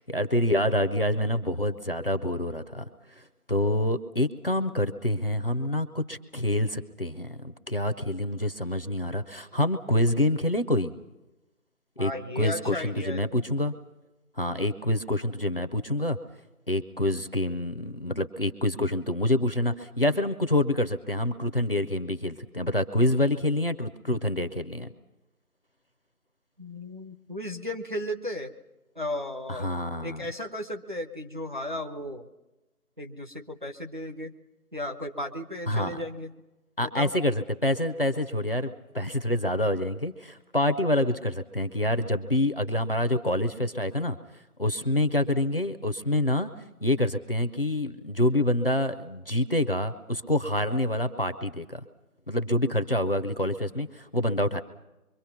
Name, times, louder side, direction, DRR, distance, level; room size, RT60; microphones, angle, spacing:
voice 1, 0.0-2.8 3.2-10.9 12.0-13.7 14.4-16.2 16.7-24.9 29.5-30.3 35.7-36.0 36.8-44.2 44.6-46.5 46.8-51.8 52.3-54.6, left 1 dB, 40° left, 10 dB, 0.7 m, -27 dB
voice 2, 12.0-13.2 26.6-28.5 29.0-29.7 30.0-32.3 33.0-34.3 34.7-36.3 36.8-37.1, left 1 dB, 35° right, 4 dB, 0.8 m, -35 dB
25.5 x 24.0 x 5.8 m, 1.0 s
figure-of-eight pair, 170°, 45 cm